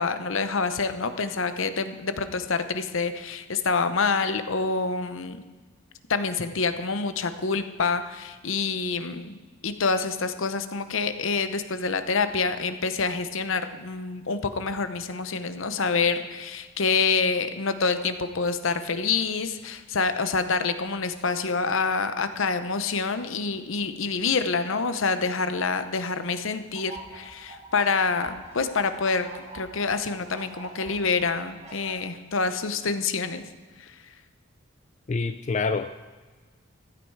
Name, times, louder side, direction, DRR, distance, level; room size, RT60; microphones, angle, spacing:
voice 1, 0.0-5.4 6.1-29.3 29.5-33.4 33.8-33.9, left 4 dB, 70° left, 10 dB, 0.8 m, -27 dB
sound 1, 26.7-31.9, right 2 dB, 35° right, 2.8 m, -44 dB
voice 2, 35.1-36.0, left 4 dB, 35° left, 9 dB, 0.3 m, -27 dB
15.0 x 9.7 x 4.7 m, 1.4 s
head